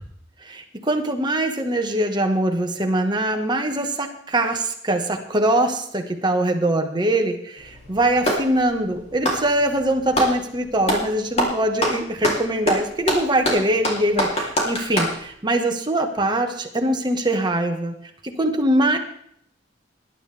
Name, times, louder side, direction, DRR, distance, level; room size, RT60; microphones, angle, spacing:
voice 1, 0.5-17.9 18.2-19.0, right 1 dB, 25° right, 4 dB, 1.7 m, -22 dB
Clapping, 7.6-8.5 9.1-10.4 10.8-11.1 11.4-15.2, equal, 35° left, 3.5 m, -23 dB
19.5 x 11.5 x 3.6 m, 0.68 s
head